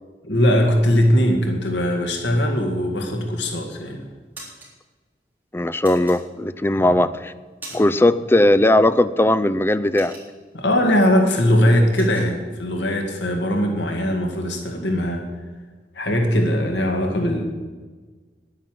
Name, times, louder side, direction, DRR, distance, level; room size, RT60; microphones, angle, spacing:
voice 1, 0.2-4.1 6.8-6.9 10.5-15.2 16.0-17.5, equal, 85° left, 2 dB, 2.0 m, -20 dB
sound 1, 3.3-3.7 4.1-4.7 5.8-6.7 7.1-8.1 8.4-8.6 9.0-10.7 11.1-11.3 11.5-12.3, right 2 dB, 10° right, 3.9 m, -41 dB
voice 2, 5.5-7.3 7.7-10.2, left 1 dB, 15° left, 13 dB, 0.4 m, -18 dB
10.5 x 9.9 x 7.7 m, 1.4 s
head